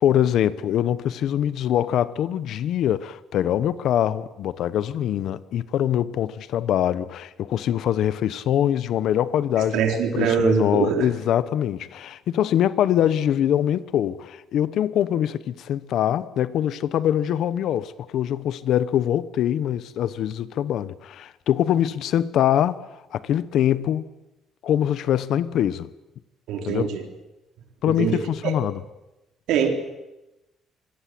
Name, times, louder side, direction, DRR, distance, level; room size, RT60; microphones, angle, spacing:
voice 1, 0.0-24.1 24.6-25.9 26.6-26.9 27.8-28.8, left 10 dB, 60° left, 1.0 m, -23 dB
voice 2, 9.7-11.1 26.5-27.0 28.0-28.5 29.5-29.7, right 7 dB, 80° right, 4.0 m, -23 dB
26.0 x 23.5 x 7.8 m
cardioid pair, 170°, 0 cm